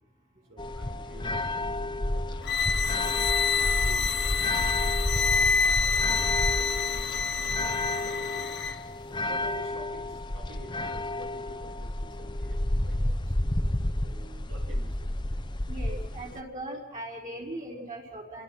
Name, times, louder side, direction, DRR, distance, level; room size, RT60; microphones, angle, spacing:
voice 1, 0.5-2.5 2.9-8.5 9.1-13.4 14.0-15.2, right 1 dB, 85° right, 1 dB, 6.5 m, -50 dB
sound 1, 0.6-16.4, left 1 dB, 25° left, 1.0 m, -31 dB
sound 2, 2.4-8.8, left 5 dB, 60° left, 1.1 m, -27 dB
voice 2, 15.7-18.4, right 1 dB, 40° right, -2 dB, 4.9 m, -39 dB
29.0 x 22.5 x 5.9 m, 0.87 s
head